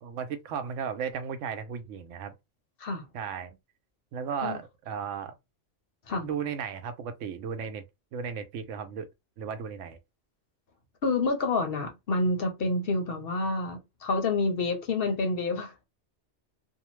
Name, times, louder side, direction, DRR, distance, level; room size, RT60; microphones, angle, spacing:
voice 1, 0.0-2.3 3.1-3.6 4.1-5.3 6.2-7.8 8.1-9.1 9.4-10.0, right 7 dB, 85° right, 0.9 m, -35 dB
voice 2, 11.0-15.8, left 3 dB, 55° left, 0.8 m, -28 dB
2.7 x 2.0 x 3.0 m
omnidirectional pair, 1.2 m